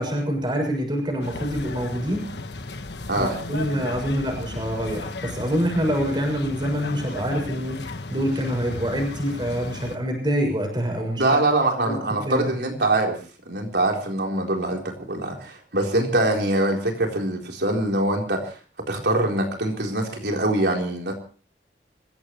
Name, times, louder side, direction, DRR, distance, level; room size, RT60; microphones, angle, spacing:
voice 1, 0.0-2.3 3.2-11.2 11.9-12.4, equal, 25° right, 2 dB, 6.3 m, -26 dB
sound 1, 1.2-10.0, left 2 dB, 75° left, 1.4 m, -35 dB
voice 2, 11.2-13.2 13.5-18.5 18.9-21.1, right 2 dB, 70° right, 1 dB, 3.9 m, -23 dB
26.5 x 16.0 x 3.1 m, 0.40 s
head